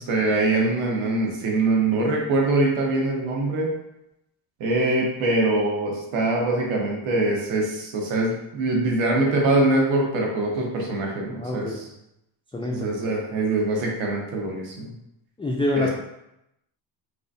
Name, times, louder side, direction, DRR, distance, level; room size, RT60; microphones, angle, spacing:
voice 1, 0.0-3.7 4.6-11.9 12.7-14.9 15.8-15.9, right 2 dB, 85° right, -1 dB, 1.2 m, -23 dB
voice 2, 11.3-12.0 12.5-12.9 15.4-15.9, left 1 dB, 10° left, -2 dB, 0.4 m, -26 dB
4.8 x 3.5 x 2.7 m, 0.85 s
cardioid pair, 90°, 46 cm